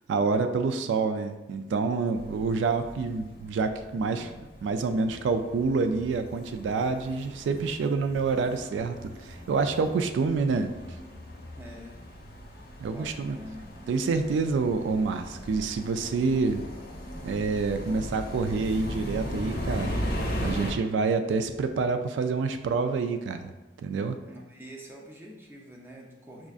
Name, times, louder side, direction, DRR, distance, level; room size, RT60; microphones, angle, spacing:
voice 1, 0.1-10.7 12.8-13.4 13.9-16.6 17.2-20.1 20.4-23.5 23.8-24.2, right 4 dB, 90° right, 9 dB, 0.3 m, -27 dB
sound 1, 2.1-20.7, equal, 55° left, 0.7 m, -38 dB
voice 2, 11.6-12.0 12.9-13.7 24.3-26.5, equal, 15° right, -2 dB, 0.5 m, -45 dB
6.0 x 2.4 x 2.4 m, 1.1 s
head